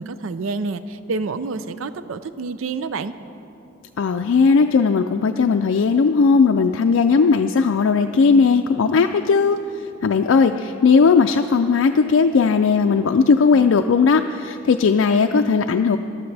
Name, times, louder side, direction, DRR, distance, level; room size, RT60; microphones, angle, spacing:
voice 1, 0.0-3.1, right 4 dB, 90° right, 12 dB, 0.5 m, -28 dB
voice 2, 4.0-9.6 10.0-16.0, left 5 dB, 85° left, 5 dB, 0.4 m, -17 dB
19.5 x 12.0 x 3.4 m, 2.7 s
head